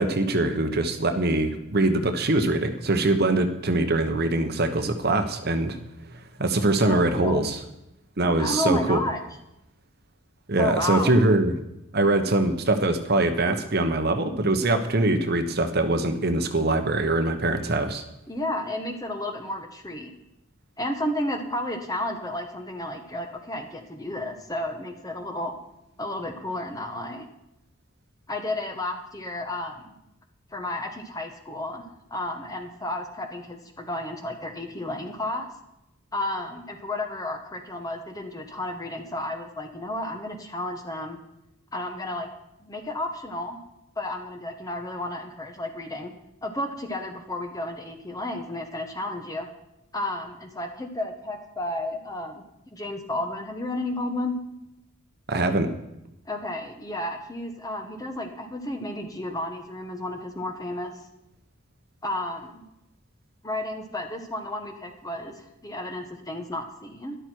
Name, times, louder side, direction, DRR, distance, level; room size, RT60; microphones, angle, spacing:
voice 1, 0.0-5.8 6.4-7.6 8.2-9.0 10.5-11.5 11.9-18.0 55.3-55.7, right 2 dB, 50° right, 7 dB, 1.1 m, -23 dB
voice 2, 6.8-7.4 8.4-9.2 10.6-11.1 18.3-20.1 20.8-25.6 26.0-27.3 28.3-29.9 30.5-31.8 32.1-35.5 36.1-41.2 41.7-42.3 42.6-43.6 44.0-46.1 46.4-49.5 49.9-52.4 52.7-54.4 56.3-61.0 62.0-62.6 63.4-67.2, left 1 dB, 15° left, 5 dB, 1.3 m, -32 dB
13.0 x 11.5 x 4.6 m, 0.86 s
head